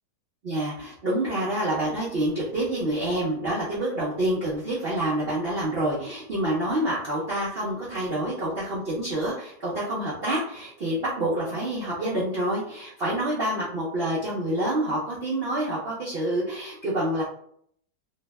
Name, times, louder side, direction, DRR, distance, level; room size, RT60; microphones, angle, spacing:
voice 1, 0.4-17.2, right 1 dB, 75° right, -7 dB, 0.5 m, -27 dB
3.2 x 2.0 x 3.3 m, 0.65 s
omnidirectional pair, 2.0 m